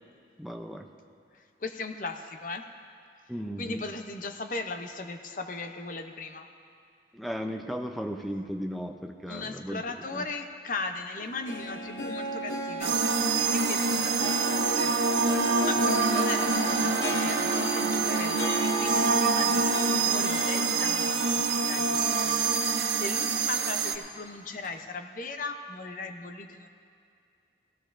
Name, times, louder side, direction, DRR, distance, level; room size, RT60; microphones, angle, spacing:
voice 1, 0.4-0.9 3.3-3.8 7.1-9.8 10.1-10.2, equal, ahead, 3 dB, 0.5 m, -35 dB
voice 2, 1.3-2.7 3.6-6.5 9.3-13.0 13.5-14.9 15.4-19.7 20.0-26.7, left 3 dB, 45° left, 7 dB, 0.6 m, -38 dB
Harp, 11.2-23.3 23.7-23.8 24.6-24.7, right 1 dB, 75° left, 1.1 m, -35 dB
sound 1, 12.8-24.0, right 4 dB, 70° right, 0.7 m, -26 dB
17.5 x 15.5 x 2.6 m, 2.4 s
head